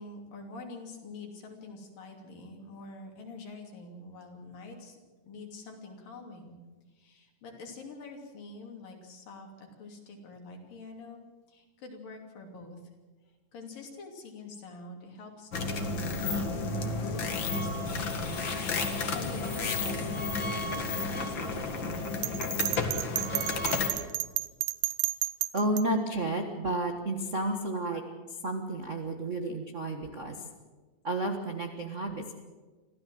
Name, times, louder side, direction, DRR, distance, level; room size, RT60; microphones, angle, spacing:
voice 1, 0.0-5.0 5.2-6.6 6.9-12.8 13.5-16.4 16.9-18.4 18.8-22.6, left 3 dB, 70° left, 2 dB, 4.6 m, -46 dB
sound 1, 15.5-23.9, left 3 dB, 40° left, 2.1 m, -32 dB
Bell, 22.2-25.8, right 16 dB, 75° right, 2.1 m, -31 dB
voice 2, 25.5-28.0 28.3-30.5 31.0-32.3, right 1 dB, 60° right, 4 dB, 0.7 m, -31 dB
25.5 x 15.0 x 7.8 m, 1.3 s
omnidirectional pair, 4.1 m